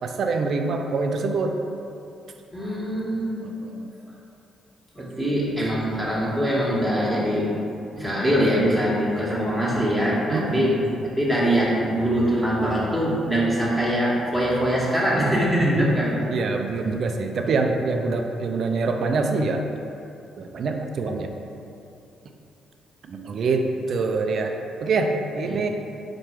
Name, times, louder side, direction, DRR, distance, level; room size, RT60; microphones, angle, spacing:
voice 1, 0.0-1.6 3.4-3.9 5.0-5.3 10.3-11.0 15.5-16.0 16.3-19.6 20.4-21.3 23.1-24.5 24.8-25.7, right 3 dB, 55° right, 4 dB, 0.3 m, -25 dB
voice 2, 2.5-3.3 5.0-7.5 8.0-10.7 11.0-16.3 16.9-17.0 25.5-25.6, equal, 5° left, -7 dB, 1.1 m, -23 dB
4.3 x 2.3 x 4.4 m, 2.7 s
figure-of-eight pair, 40°, 0 cm